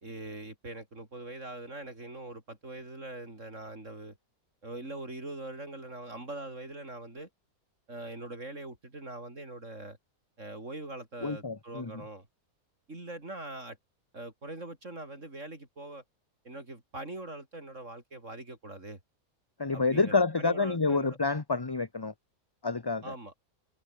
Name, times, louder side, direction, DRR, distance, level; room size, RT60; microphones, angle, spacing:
voice 1, 0.0-4.2 4.6-7.3 7.9-10.0 10.4-12.3 12.9-13.8 14.1-16.0 16.4-19.0 19.7-21.2 23.0-23.3, right 2 dB, 55° right, 5.2 m, -42 dB
voice 2, 11.2-11.9 19.6-22.1 22.6-23.1, left 3 dB, 20° left, 0.8 m, -28 dB
omnidirectional pair, 1.5 m